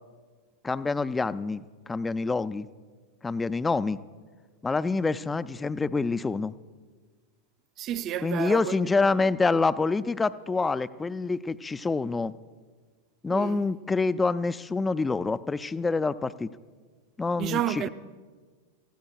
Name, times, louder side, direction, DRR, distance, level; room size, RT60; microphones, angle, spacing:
voice 1, 0.6-2.7 3.2-4.0 4.6-6.5 8.2-12.3 13.2-16.5 17.2-17.9, left 3 dB, 10° left, 0.4 m, -27 dB
voice 2, 7.8-8.7 9.0-9.2 13.3-13.6 17.4-17.9, right 11 dB, 35° right, 0.6 m, -31 dB
28.0 x 15.5 x 2.3 m
figure-of-eight pair, 90°, 0 cm